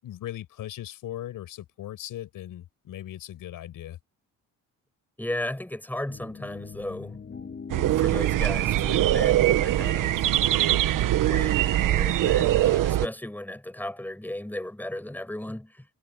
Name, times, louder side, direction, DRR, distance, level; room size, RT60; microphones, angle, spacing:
voice 1, 0.0-4.0, left 12 dB, 75° left, 5.9 m, -38 dB
voice 2, 5.2-7.2 8.0-10.2 10.9-15.9, left 1 dB, 5° left, 7.3 m, -35 dB
sound 1, 6.1-11.1, left 6 dB, 35° left, 2.0 m, -43 dB
sound 2, 7.7-13.1, right 13 dB, 70° right, 1.2 m, -22 dB
cardioid pair, 115°, 33 cm